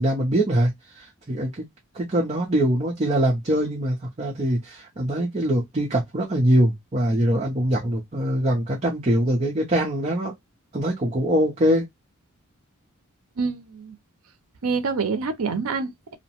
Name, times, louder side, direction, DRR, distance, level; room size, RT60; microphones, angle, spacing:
voice 1, 0.0-1.6 1.9-10.3 10.7-11.9, right 1 dB, 30° right, 0.6 m, -23 dB
voice 2, 13.4-14.0 14.6-16.1, right 4 dB, 75° right, 0.6 m, -26 dB
2.7 x 2.1 x 2.8 m
head